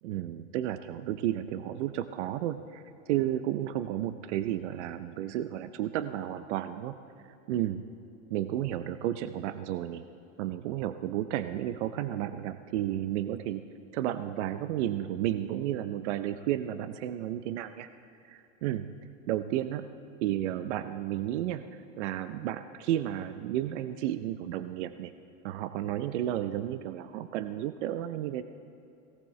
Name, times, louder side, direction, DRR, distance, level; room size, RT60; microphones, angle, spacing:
voice 1, 0.0-2.8 3.1-7.0 7.5-7.8 8.3-10.1 10.4-13.6 13.9-17.9 18.2-18.9 19.3-19.9 20.2-21.7 22.0-25.1 25.4-28.4, right 12 dB, 65° right, 11 dB, 0.6 m, -32 dB
18.0 x 17.5 x 3.2 m, 2.7 s
supercardioid pair, 155°, 39 cm